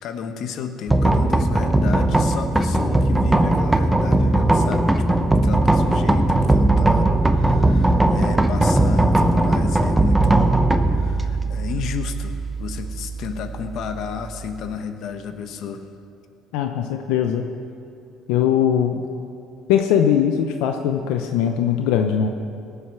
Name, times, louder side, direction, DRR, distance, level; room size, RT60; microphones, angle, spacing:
voice 1, 0.0-5.1 5.4-10.6 10.9-15.8, left 7 dB, 60° left, 7 dB, 1.2 m, -32 dB
sound 1, 0.9-14.7, right 2 dB, 10° right, 0.8 m, -19 dB
voice 2, 16.5-17.5 18.3-19.0 19.7-22.3, left 9 dB, 85° left, 5 dB, 0.8 m, -20 dB
18.5 x 8.1 x 6.1 m, 2.8 s
cardioid pair, 120°, 0 cm